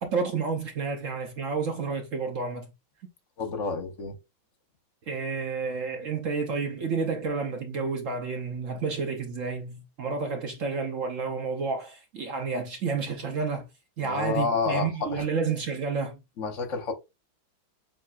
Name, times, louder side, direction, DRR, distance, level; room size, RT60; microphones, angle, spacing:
voice 1, 0.0-2.7 5.1-13.7 14.0-16.2, right 5 dB, 65° right, 0.8 m, -30 dB
voice 2, 3.4-4.2 14.0-15.2 16.4-16.9, left 5 dB, 50° left, 0.9 m, -29 dB
7.4 x 2.6 x 2.3 m
omnidirectional pair, 2.2 m